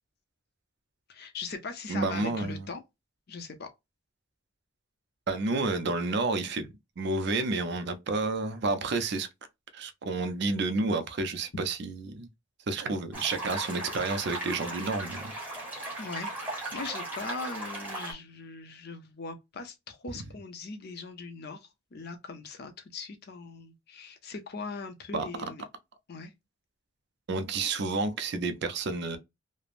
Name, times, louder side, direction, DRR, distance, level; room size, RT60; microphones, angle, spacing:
voice 1, 1.1-2.8 3.3-3.7 16.0-25.6 26.1-26.3, left 4 dB, 50° left, 0.6 m, -40 dB
voice 2, 1.9-2.7 5.3-6.7 7.0-9.3 9.7-12.3 12.7-15.3 25.1-25.3 27.3-29.2, right 3 dB, 55° right, 0.5 m, -30 dB
sound 1, 13.1-18.1, right 2 dB, 10° right, 1.0 m, -37 dB
3.2 x 2.0 x 2.4 m
head